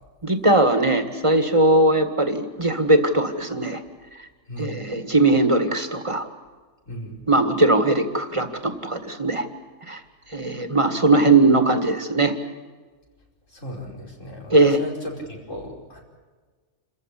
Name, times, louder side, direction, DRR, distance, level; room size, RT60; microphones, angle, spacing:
voice 1, 0.2-3.8 4.6-6.3 7.3-9.5 9.9-10.0 10.3-12.3 14.5-14.8, right 2 dB, 25° right, 8 dB, 1.9 m, -19 dB
voice 2, 4.5-4.9 6.9-7.2 13.5-16.0, equal, 85° left, -1 dB, 5.4 m, -36 dB
28.0 x 15.0 x 10.0 m, 1.4 s
omnidirectional pair, 1.3 m